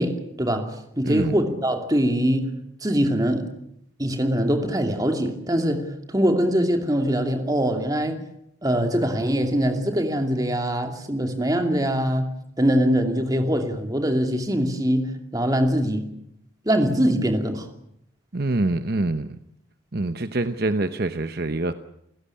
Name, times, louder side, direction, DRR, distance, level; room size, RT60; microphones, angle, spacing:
voice 1, 0.0-2.5 2.8-3.5 4.0-8.2 8.6-12.2 12.6-15.1 15.3-16.1 16.7-17.7, equal, 20° right, 2.6 m, -23 dB
voice 2, 1.0-1.3 18.3-19.4 19.9-21.7, right 2 dB, 50° right, 0.9 m, -25 dB
29.5 x 16.0 x 8.5 m
head